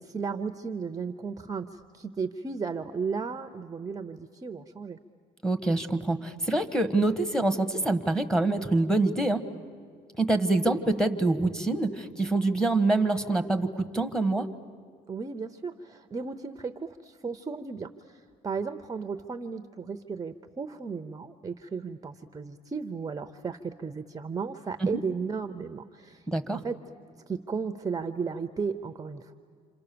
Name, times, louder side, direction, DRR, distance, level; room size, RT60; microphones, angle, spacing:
voice 1, 0.0-5.0 15.1-26.3 26.5-26.8 27.3-29.3, right 5 dB, 20° right, 9 dB, 0.8 m, -35 dB
voice 2, 5.4-9.4 10.2-14.5 24.8-25.0 26.3-26.6, right 2 dB, 5° left, 7 dB, 1.4 m, -25 dB
28.0 x 27.0 x 6.9 m, 2.2 s
cardioid pair, 110°, 17 cm